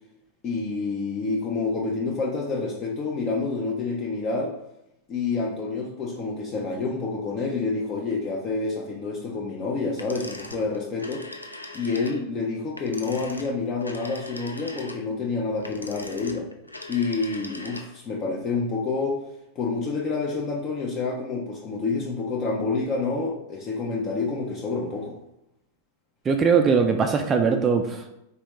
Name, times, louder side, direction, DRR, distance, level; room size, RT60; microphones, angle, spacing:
voice 1, 0.4-4.6 5.1-11.2 11.7-16.5 16.9-19.2 19.6-25.2, left 4 dB, 30° left, -2 dB, 0.6 m, -28 dB
sound 1, 9.9-18.1, left 2 dB, 85° left, 0.3 m, -41 dB
voice 2, 26.3-28.1, right 5 dB, 20° right, 4 dB, 0.3 m, -21 dB
3.6 x 3.1 x 3.0 m, 0.83 s
figure-of-eight pair, 90°, 0 cm